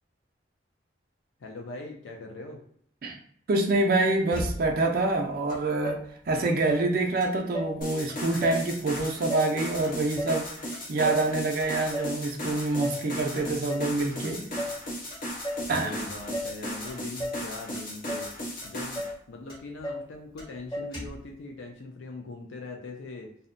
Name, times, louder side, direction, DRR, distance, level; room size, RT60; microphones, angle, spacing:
voice 1, 1.4-2.6 13.9-14.7 15.8-23.3, left 2 dB, 90° left, 1 dB, 0.4 m, -41 dB
voice 2, 3.5-6.0 6.3-14.4 15.7-15.9, right 2 dB, 50° right, 2 dB, 0.4 m, -26 dB
Motor vehicle (road), 4.3-5.0 5.5-5.6 5.8-6.9 7.2-7.8 8.1-8.7 9.0-10.4 10.7-11.3 11.6-12.2 12.5-13.1 13.3-13.9 14.2-14.8 15.1-15.7 16.0-16.6 16.9-17.4 17.7-18.3 18.6-18.7 18.9-19.2 19.5-20.1 20.4-20.5 20.7-21.3, left 1 dB, 25° left, 1.1 m, -35 dB
sound 1, 7.8-19.1, equal, 45° left, 0.7 m, -36 dB
2.7 x 2.1 x 2.5 m, 0.64 s
head